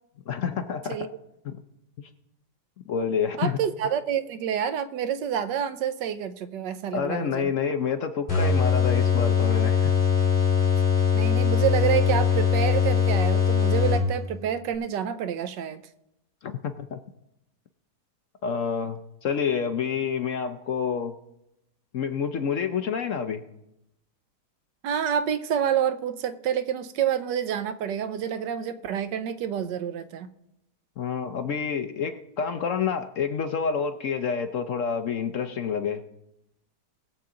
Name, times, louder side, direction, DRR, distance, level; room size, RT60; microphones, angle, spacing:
voice 1, 0.3-1.1 1.4-1.6 2.0-2.1 2.9-3.6 6.9-9.9 16.4-17.0 18.4-21.1 21.9-23.4 31.0-36.0, left 6 dB, 60° left, 8 dB, 0.9 m, -28 dB
voice 2, 3.4-7.5 11.1-15.8 24.8-30.3, right 9 dB, 85° right, 11 dB, 1.4 m, -28 dB
sound 1, 8.3-14.4, left 6 dB, 30° left, 3.8 m, -22 dB
20.5 x 7.2 x 3.8 m, 0.85 s
omnidirectional pair, 1.9 m